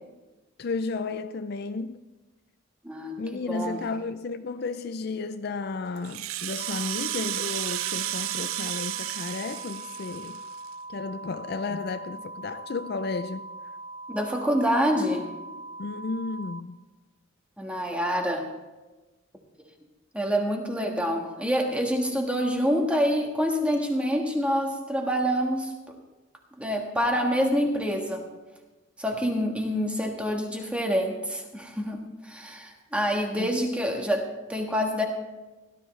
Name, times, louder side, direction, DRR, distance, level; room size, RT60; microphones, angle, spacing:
voice 1, 0.6-2.0 3.2-10.4 10.9-13.5 15.8-16.8 33.4-33.6, left 4 dB, 50° left, 0.4 m, -33 dB
voice 2, 2.8-3.8 14.1-15.3 17.6-18.5 20.1-26.0 26.6-28.2 29.0-35.0, equal, 5° right, 1.5 m, -27 dB
Rattle (instrument), 6.0-10.7, right 14 dB, 85° right, 0.4 m, -33 dB
sound 1, 6.6-16.6, right 2 dB, 30° right, 0.6 m, -41 dB
17.0 x 12.5 x 3.2 m
head